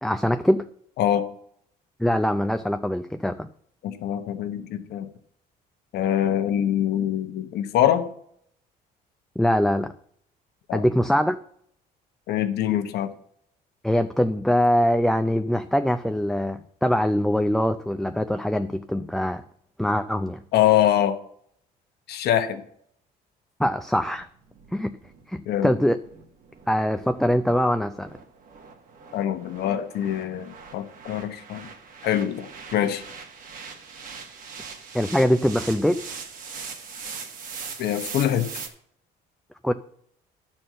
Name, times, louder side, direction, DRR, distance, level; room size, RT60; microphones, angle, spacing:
voice 1, 0.0-0.6 2.0-3.5 9.4-9.9 10.7-11.4 13.8-19.4 19.8-20.4 23.6-24.3 24.7-24.9 25.3-26.0 26.7-28.1 34.9-36.0 39.6-39.7, equal, ahead, 7 dB, 0.4 m, -23 dB
voice 2, 3.8-5.1 5.9-8.1 10.7-10.8 12.3-13.1 20.5-21.2 22.1-22.6 25.5-25.7 29.1-31.7 32.0-33.0 37.8-38.5, left 11 dB, 75° left, 9 dB, 1.0 m, -24 dB
sound 1, 24.1-38.7, right 5 dB, 55° right, 1.7 m, -41 dB
10.5 x 4.4 x 7.5 m, 0.66 s
cardioid pair, 110°, 17 cm